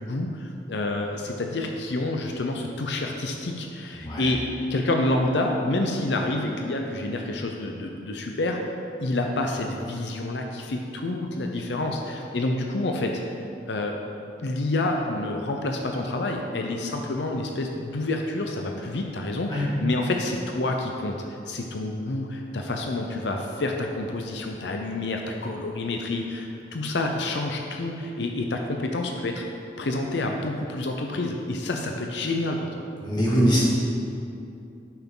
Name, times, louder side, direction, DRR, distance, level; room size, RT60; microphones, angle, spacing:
voice 1, 0.0-4.4 4.7-8.6 9.0-13.2 13.7-14.0 14.4-21.2 21.5-29.4 29.8-32.8, left 2 dB, 80° left, 2 dB, 0.6 m, -28 dB
voice 2, 33.0-33.6, equal, 25° left, -6 dB, 1.7 m, -22 dB
11.0 x 5.9 x 3.8 m, 2.6 s
head